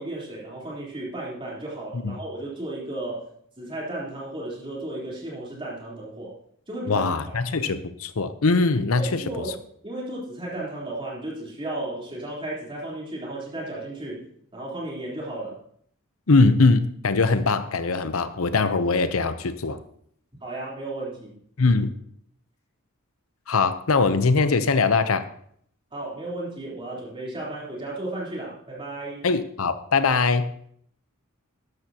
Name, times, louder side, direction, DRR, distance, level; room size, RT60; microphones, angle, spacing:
voice 1, 0.0-3.3 3.6-6.4 6.7-7.4 8.9-9.6 9.8-14.3 14.5-15.6 20.4-21.4 25.9-29.3, right 2 dB, 25° right, 3.6 m, -34 dB
voice 2, 6.9-9.2 16.3-19.8 21.6-21.9 23.5-25.2 29.2-30.5, left 3 dB, 75° left, 0.7 m, -21 dB
13.0 x 10.5 x 2.9 m
head